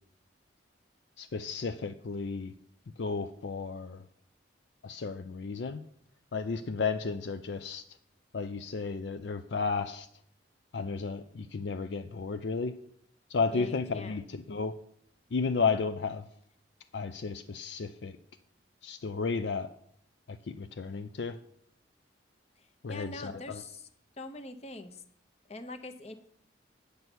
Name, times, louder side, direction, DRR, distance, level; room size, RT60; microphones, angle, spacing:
voice 1, 1.2-2.5 3.0-4.0 4.8-5.8 6.3-7.8 8.3-10.1 10.7-12.8 13.3-14.8 15.3-16.2 16.9-18.2 18.8-19.7 20.3-21.4 22.8-23.6, left 4 dB, 65° left, 9 dB, 0.5 m, -33 dB
voice 2, 13.5-14.2 22.9-23.9 24.2-25.0 25.5-26.1, left 2 dB, 35° left, 8 dB, 0.8 m, -43 dB
9.4 x 6.8 x 6.1 m, 0.65 s
head